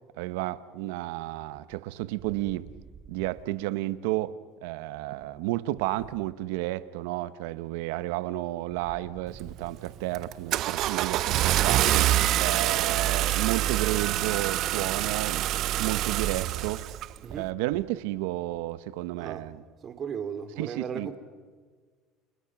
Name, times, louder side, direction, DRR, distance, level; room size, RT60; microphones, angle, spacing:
voice 1, 0.2-2.7 3.1-4.3 4.6-15.5 15.8-16.8 17.3-19.6 20.6-21.1, right 16 dB, 90° right, 1.1 m, -32 dB
Car / Engine starting, 9.4-9.7 10.2-17.1, right 14 dB, 55° right, 0.8 m, -26 dB
voice 2, 19.8-21.2, right 7 dB, 35° right, 2.8 m, -36 dB
30.0 x 30.0 x 6.1 m
cardioid pair, 130°, 0 cm